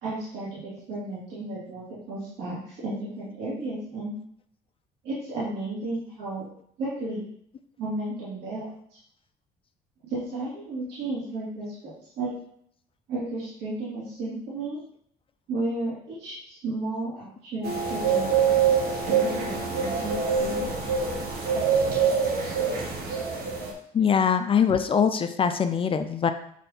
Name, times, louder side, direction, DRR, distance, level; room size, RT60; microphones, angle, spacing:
voice 1, 0.0-4.1 5.0-6.4 6.8-7.3 7.8-8.7 10.0-12.3 13.1-14.8 15.5-18.4 19.0-20.6, right 2 dB, 80° right, -9 dB, 2.6 m, -33 dB
sound 1, 17.6-23.7, right 6 dB, 65° right, 1.4 m, -25 dB
voice 2, 23.9-26.3, left 7 dB, 35° left, 9 dB, 0.4 m, -22 dB
7.3 x 3.3 x 4.3 m, 0.67 s
cardioid pair, 110°, 17 cm